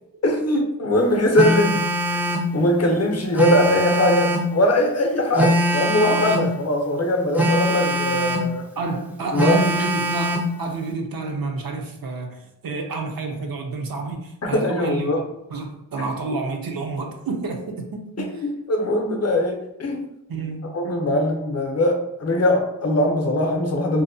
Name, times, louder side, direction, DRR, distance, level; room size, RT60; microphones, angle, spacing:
voice 1, 0.2-8.7 9.3-9.6 14.4-15.2 18.2-20.1 20.7-24.0, left 1 dB, 45° left, 2 dB, 0.5 m, -21 dB
Telephone, 1.3-2.5 3.3-4.5 5.3-6.5 7.3-8.5 9.4-10.5, equal, 5° right, 0.3 m, -22 dB
voice 2, 8.8-15.1 15.5-18.4 20.3-20.7, right 4 dB, 75° right, 2 dB, 0.5 m, -29 dB
2.6 x 2.1 x 2.6 m, 0.87 s
wide cardioid pair, 75°, 35 cm